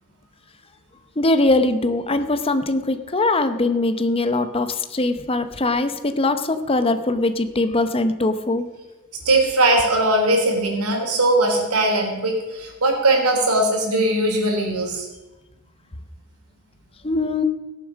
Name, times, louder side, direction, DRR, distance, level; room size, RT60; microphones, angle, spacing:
voice 1, 1.2-8.7 17.0-17.4, left 2 dB, 25° left, 10 dB, 0.7 m, -21 dB
voice 2, 9.2-15.1, right 2 dB, 85° right, 1 dB, 3.3 m, -20 dB
16.5 x 7.3 x 6.3 m, 1.1 s
head